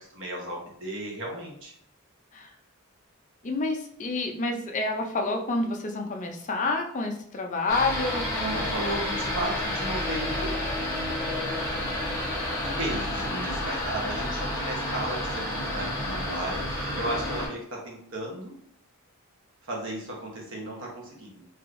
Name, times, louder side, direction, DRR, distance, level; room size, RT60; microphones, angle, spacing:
voice 1, 0.0-1.7 8.3-10.6 12.6-18.6 19.6-21.4, right 1 dB, 55° right, -1 dB, 0.9 m, -34 dB
voice 2, 3.4-8.3 13.2-13.5, left 2 dB, 35° left, 3 dB, 0.4 m, -29 dB
sound 1, 7.7-17.5, left 1 dB, 15° left, 0.8 m, -30 dB
3.3 x 2.6 x 2.5 m, 0.65 s
head